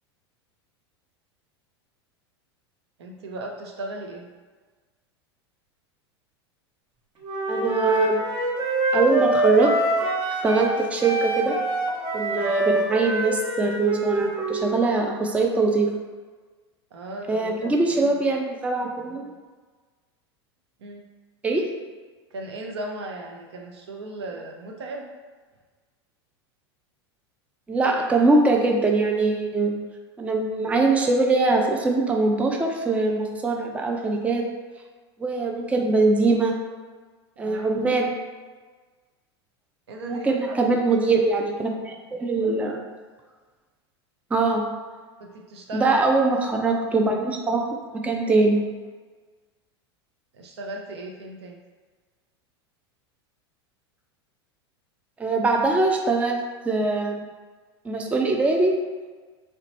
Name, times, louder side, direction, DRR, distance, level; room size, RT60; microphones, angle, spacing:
voice 1, 3.0-4.3 12.4-12.5 16.9-18.3 20.8-21.0 22.3-25.1 37.4-37.8 39.9-40.5 45.2-46.0 50.3-51.6, right 1 dB, 75° right, 1 dB, 0.6 m, -37 dB
Wind instrument woodwind instrument, 7.2-10.8 11.0-14.9, right 2 dB, 35° right, 0.8 m, -25 dB
voice 2, 7.5-8.2 8.9-9.7 10.4-11.6 12.1-15.9 17.3-19.3 21.4-21.7 27.7-29.7 30.2-34.4 35.2-36.5 37.4-38.1 40.1-42.8 44.3-44.6 45.7-47.6 48.0-48.6 55.2-57.2 57.8-58.8, right 3 dB, 10° right, 2 dB, 0.4 m, -22 dB
3.8 x 2.2 x 2.9 m, 1.4 s
hypercardioid pair, 90°, 14 cm